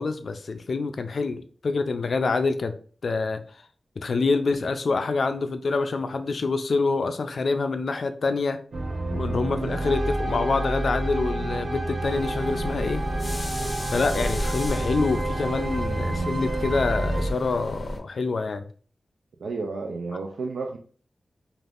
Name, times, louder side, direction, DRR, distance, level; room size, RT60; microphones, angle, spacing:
voice 1, 0.0-2.7 3.0-3.4 4.0-8.6 9.1-13.0 13.9-18.7, left 4 dB, 65° left, 0.3 m, -26 dB
sound 1, 8.7-17.3, right 1 dB, 55° right, 0.7 m, -28 dB
sound 2, 12.0-18.0, left 1 dB, 25° left, 0.6 m, -34 dB
voice 2, 19.4-20.8, right 4 dB, 85° right, 0.3 m, -31 dB
3.3 x 2.4 x 2.4 m
wide cardioid pair, 70°, 0 cm